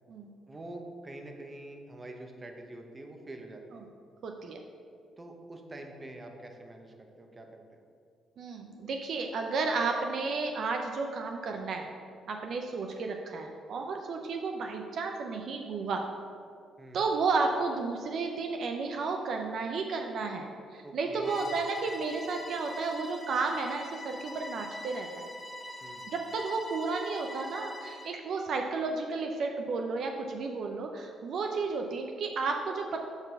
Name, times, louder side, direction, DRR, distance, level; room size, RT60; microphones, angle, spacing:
voice 1, 0.5-3.9 5.2-7.8 16.8-17.0 20.8-21.6 25.8-26.0, right 1 dB, 25° right, 3 dB, 1.0 m, -46 dB
voice 2, 4.2-4.6 8.4-11.9 12.3-16.0 16.9-25.3 26.1-33.0, right 4 dB, 65° right, 3 dB, 0.6 m, -32 dB
Bowed string instrument, 21.2-28.2, left 1 dB, 15° left, 0.8 m, -43 dB
7.1 x 4.0 x 6.6 m, 2.3 s
cardioid pair, 90°, 0 cm